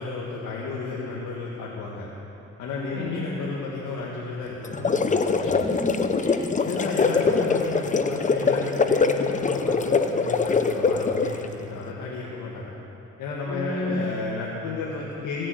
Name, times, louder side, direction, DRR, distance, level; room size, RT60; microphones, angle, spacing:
voice 1, 0.0-2.1 2.6-5.2 6.6-12.7 13.2-15.5, left 4 dB, 85° left, -4 dB, 1.8 m, -32 dB
voice 2, 2.9-3.2 5.4-6.4 7.1-7.4 13.4-14.0, left 1 dB, 65° left, -4 dB, 3.7 m, -33 dB
sound 1, 4.6-11.4, left 4 dB, 25° left, 0.7 m, -23 dB
16.5 x 7.4 x 7.8 m, 3.0 s
cardioid pair, 90°, 30 cm